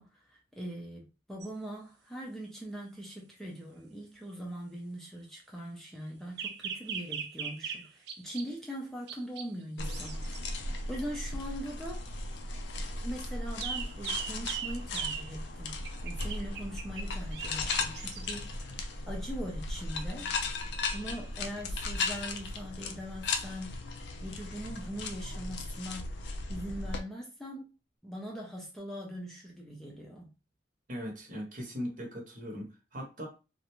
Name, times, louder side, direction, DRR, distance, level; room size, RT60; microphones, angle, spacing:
voice 1, 0.0-10.6 10.9-12.0 12.8-20.3 20.9-23.9 24.2-26.1 26.5-27.7 28.0-30.3, equal, ahead, 0.4 m, -41 dB
sound 1, 1.4-1.5 6.4-8.5 9.1-9.5 9.9-10.5 13.6-15.3 15.8-18.4 20.2-20.4, right 7 dB, 65° right, 0.4 m, -39 dB
sound 2, 9.8-27.0, left 3 dB, 65° left, 0.4 m, -36 dB
voice 2, 30.9-33.3, equal, 45° right, 0.9 m, -39 dB
2.4 x 2.1 x 2.9 m
head